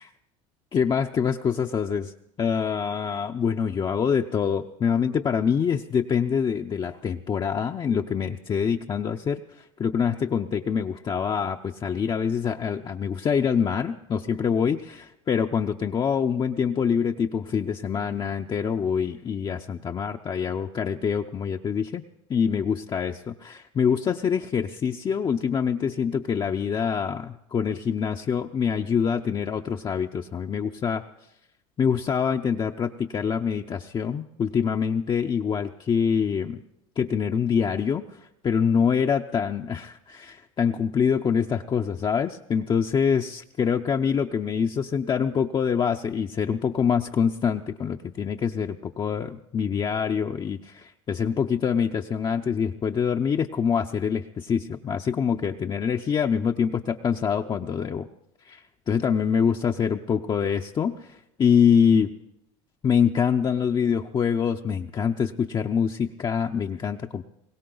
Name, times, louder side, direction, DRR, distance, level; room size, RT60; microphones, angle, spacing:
voice 1, 0.7-2.1 2.4-22.0 22.3-31.0 31.8-36.6 37.0-58.1 58.4-62.1 62.8-67.3, left 7 dB, 30° left, 3 dB, 0.7 m, -25 dB
21.5 x 17.0 x 3.9 m, 0.83 s
supercardioid pair, 100°, 16 cm